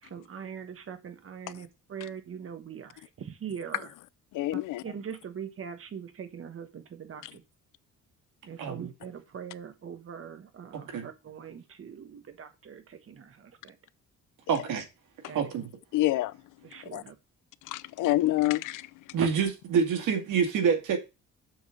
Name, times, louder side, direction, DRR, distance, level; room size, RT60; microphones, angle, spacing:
voice 1, 0.0-3.9 4.5-7.4 8.4-13.7 15.3-15.4 16.6-17.2 19.2-19.3, right 7 dB, 45° right, 1.4 m, -41 dB
voice 2, 4.3-4.8 7.2-7.3 15.9-16.4 16.9-17.0 17.7-18.9, left 16 dB, 80° left, 0.5 m, -27 dB
voice 3, 8.6-8.9 10.7-11.1 14.5-14.8 15.3-15.7 19.1-21.0, right 6 dB, 90° right, 2.1 m, -27 dB
7.1 x 3.8 x 6.4 m
cardioid pair, 120°, 31 cm